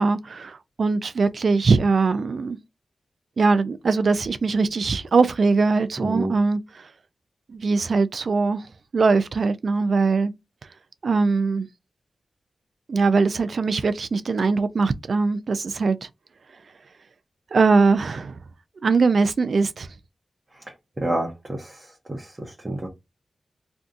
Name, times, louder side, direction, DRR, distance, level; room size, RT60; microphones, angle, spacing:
voice 1, 0.0-2.6 3.4-6.6 7.5-8.6 8.9-10.3 11.0-11.7 12.9-16.1 17.5-18.4 18.8-19.9, right 4 dB, 70° right, 0.4 m, -21 dB
voice 2, 6.0-6.3 20.5-22.9, right 1 dB, 30° right, 0.8 m, -29 dB
2.6 x 2.3 x 3.8 m
cardioid pair, 50°, 0 cm